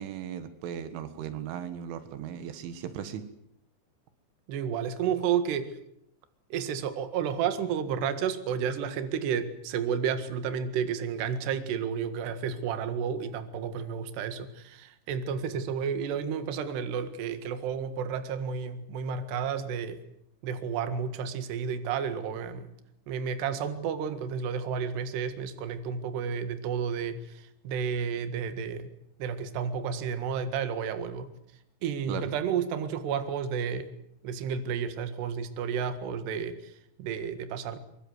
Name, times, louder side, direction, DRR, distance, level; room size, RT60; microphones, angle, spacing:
voice 1, 0.0-3.2 32.1-32.3, right 9 dB, 90° right, 10 dB, 4.1 m, -37 dB
voice 2, 4.5-5.8 6.5-20.0 20.4-22.7 23.1-28.9 29.2-31.3 31.8-33.9 34.2-37.8, right 7 dB, 65° right, 9 dB, 3.7 m, -31 dB
24.0 x 23.0 x 8.1 m, 0.75 s
omnidirectional pair, 5.4 m